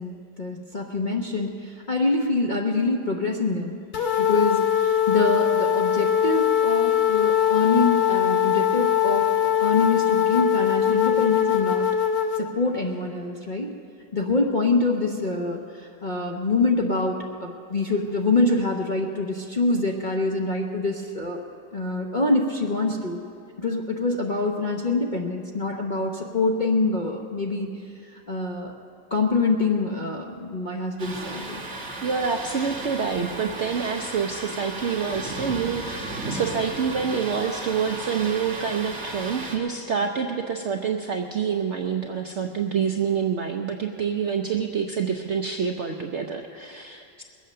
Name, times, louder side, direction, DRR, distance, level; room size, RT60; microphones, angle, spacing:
voice 1, 0.0-3.8 4.2-9.3 9.6-11.9 12.4-13.8 14.1-21.4 21.7-23.2 23.6-28.7 29.1-31.5, left 3 dB, 40° left, 0 dB, 0.7 m, -25 dB
sound 1, 3.9-12.4, left 9 dB, 80° left, 0.4 m, -21 dB
Thunder, 31.0-39.6, right 2 dB, 40° right, 2.3 m, -34 dB
voice 2, 32.0-47.2, right 6 dB, 65° right, 3 dB, 0.7 m, -27 dB
21.0 x 8.4 x 6.6 m, 2.4 s
omnidirectional pair, 1.9 m